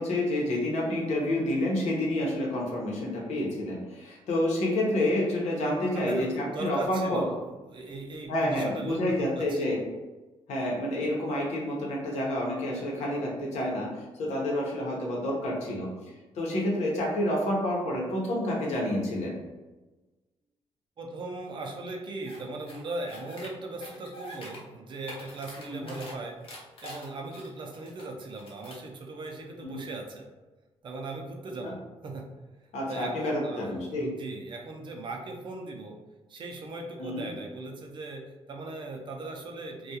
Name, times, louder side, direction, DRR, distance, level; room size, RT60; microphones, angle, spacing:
voice 1, 0.0-7.3 8.3-9.8 10.5-15.9 16.4-19.4 25.7-25.9 29.6-29.8 31.6-31.7 32.7-34.1 37.0-37.3, left 1 dB, 85° left, -3 dB, 0.8 m, -29 dB
voice 2, 5.9-7.4 7.7-9.8 21.0-26.4 26.8-30.3 30.8-32.2 32.9-36.0 36.3-38.2 38.5-40.0, right 2 dB, 45° right, 1 dB, 0.4 m, -38 dB
sound 1, 22.2-22.4 22.7-23.5 23.8-24.6 24.9-26.1 26.4-28.0 28.3-28.8, left 1 dB, 55° left, 0.8 m, -44 dB
2.3 x 2.3 x 2.8 m, 1.2 s
cardioid pair, 135°, 11 cm